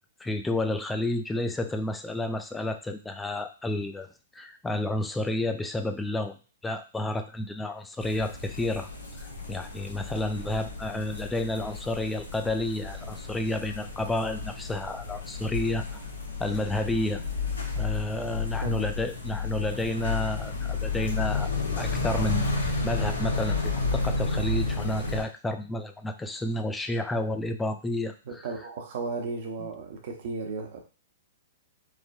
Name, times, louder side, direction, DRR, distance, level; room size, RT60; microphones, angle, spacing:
voice 1, 0.2-6.4 6.6-8.9 9.5-16.0 16.4-17.2 17.8-21.5 21.8-28.1, left 1 dB, 10° left, 7 dB, 0.3 m, -30 dB
sound 1, 8.0-25.2, left 3 dB, 80° left, 0.9 m, -31 dB
voice 2, 28.3-30.8, right 4 dB, 55° right, 3 dB, 0.8 m, -35 dB
3.3 x 2.1 x 2.5 m, 0.35 s
hypercardioid pair, 120°, 0 cm